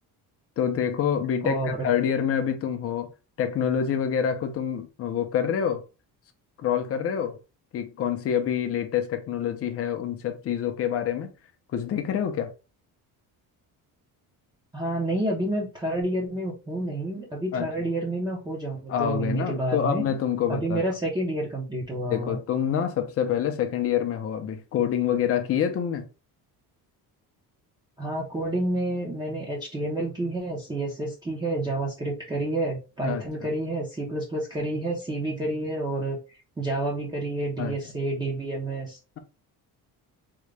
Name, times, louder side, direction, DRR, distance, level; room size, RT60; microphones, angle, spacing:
voice 1, 0.6-3.1 3.4-5.8 6.6-7.4 7.7-11.3 11.7-12.5 17.5-17.7 18.9-20.8 22.1-26.1 33.0-33.5 37.6-37.8, left 8 dB, 40° left, 0.5 m, -26 dB
voice 2, 1.4-1.8 14.7-20.0 20.5-22.4 28.0-36.2 36.6-39.0, right 1 dB, 10° right, 0.6 m, -29 dB
3.7 x 2.2 x 3.2 m
cardioid pair, 175°, 38 cm